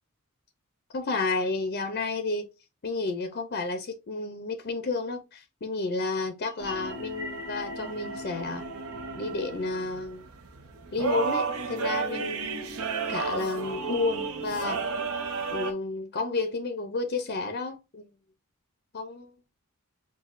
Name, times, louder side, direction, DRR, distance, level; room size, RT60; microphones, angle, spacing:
voice 1, 0.9-2.5 2.8-8.6 9.2-10.3 10.9-12.4 13.1-14.8 15.5-18.1 18.9-19.4, left 3 dB, 50° left, 0.6 m, -31 dB
sound 1, 6.5-11.0, equal, 15° right, 0.7 m, -46 dB
sound 2, 6.6-15.7, right 4 dB, 75° right, 0.8 m, -33 dB
6.0 x 2.3 x 2.5 m
head